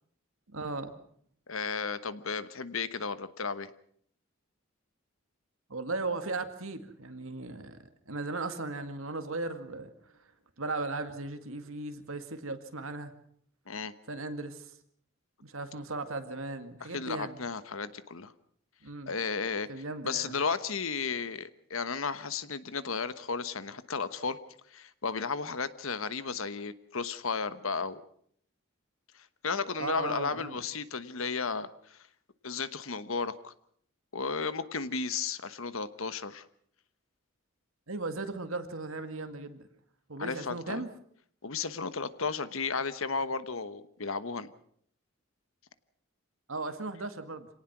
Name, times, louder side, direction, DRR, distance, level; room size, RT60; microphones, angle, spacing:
voice 1, 0.5-1.0 5.7-7.8 8.1-9.9 10.2-10.3 10.6-13.1 14.1-14.8 15.4-17.4 18.8-19.1 19.7-20.4 29.8-30.6 37.9-39.7 40.1-40.9 46.5-47.5, right 3 dB, 75° right, 8 dB, 2.1 m, -37 dB
voice 2, 1.5-3.7 13.7-13.9 16.9-18.3 19.1-19.7 20.0-24.4 24.7-28.0 29.1-32.1 32.4-33.5 34.1-36.4 40.2-40.8 41.4-44.5, left 5 dB, 75° left, 13 dB, 1.2 m, -34 dB
26.0 x 18.5 x 6.1 m, 0.63 s
head